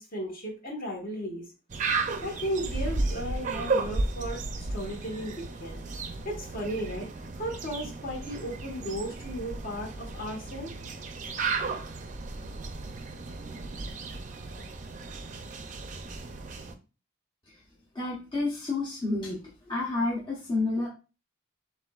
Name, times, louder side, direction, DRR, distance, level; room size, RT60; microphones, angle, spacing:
voice 1, 0.0-1.4 2.2-4.4 4.7-5.8 6.2-7.1 7.3-10.7, equal, 45° left, 0 dB, 1.3 m, -35 dB
sound 1, 1.7-16.7, right 3 dB, 40° right, 0.4 m, -34 dB
voice 2, 17.9-19.4 19.7-20.9, left 2 dB, 25° left, -5 dB, 0.8 m, -30 dB
7.1 x 2.5 x 2.4 m, 0.32 s
head